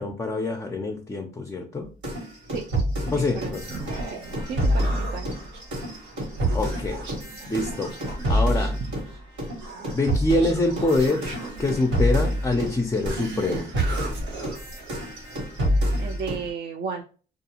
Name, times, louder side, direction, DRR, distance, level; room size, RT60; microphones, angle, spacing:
voice 1, 0.0-1.9 3.0-3.7 6.5-7.0 7.5-7.9 8.3-8.8 9.9-11.2 11.6-13.7, left 2 dB, 15° left, 3 dB, 0.4 m, -25 dB
sound 1, 2.0-9.1 9.4-16.5, equal, 90° right, 1.3 m, -27 dB
voice 2, 3.1-3.6 4.1-4.2 4.5-5.5 8.8-8.9 16.0-17.0, right 6 dB, 55° right, 1 dB, 0.4 m, -34 dB
Human voice, 3.4-15.6, right 2 dB, 75° right, 1.0 m, -38 dB
2.4 x 2.3 x 2.8 m, 0.37 s
cardioid pair, 90°, 20 cm